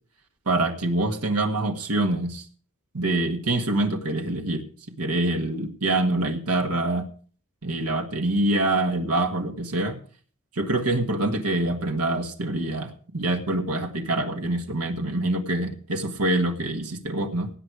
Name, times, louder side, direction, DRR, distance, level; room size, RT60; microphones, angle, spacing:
voice 1, 0.5-2.4 2.9-4.6 5.0-7.1 7.6-10.0 10.5-17.5, right 2 dB, 90° right, 4 dB, 1.7 m, -25 dB
18.0 x 8.1 x 4.8 m, 0.43 s
head